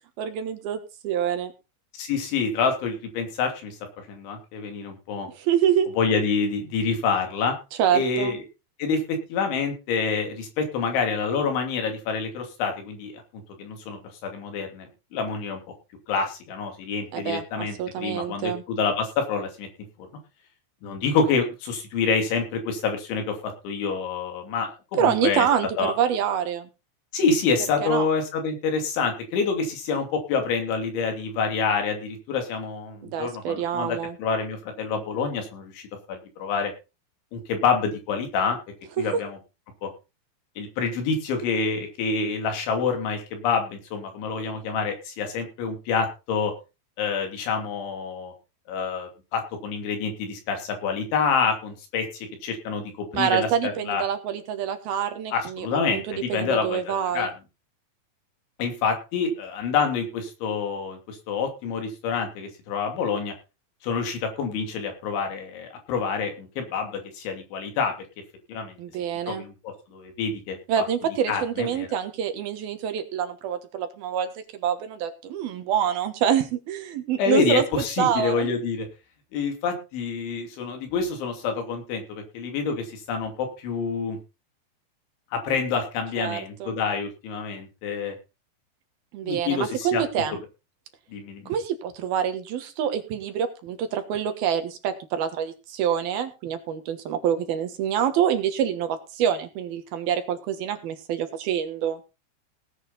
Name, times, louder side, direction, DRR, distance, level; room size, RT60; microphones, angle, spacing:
voice 1, 0.2-1.5 5.4-5.9 7.8-8.4 17.1-18.6 25.0-26.7 27.8-28.1 33.0-34.2 39.0-39.1 53.1-55.7 55.9-57.3 68.8-69.4 70.7-77.6 78.0-78.5 86.2-86.8 89.1-90.4 91.5-102.0, right 9 dB, 65° right, 8 dB, 2.9 m, -26 dB
voice 2, 1.9-3.8 4.1-5.3 6.0-7.6 7.9-8.4 8.8-13.2 13.6-15.6 16.1-19.7 20.0-20.1 20.8-25.5 25.8-25.9 27.1-36.7 37.3-38.6 39.0-39.4 39.8-39.9 40.6-46.5 47.0-48.3 48.7-54.0 55.3-57.3 58.6-63.3 63.8-67.9 68.5-68.8 69.3-70.8 71.3-71.9 77.2-78.9 79.3-84.2 85.3-88.2 89.2-90.0 91.1-91.5, left 5 dB, 85° left, 4 dB, 5.2 m, -27 dB
18.0 x 8.9 x 4.1 m, 0.30 s
omnidirectional pair, 5.2 m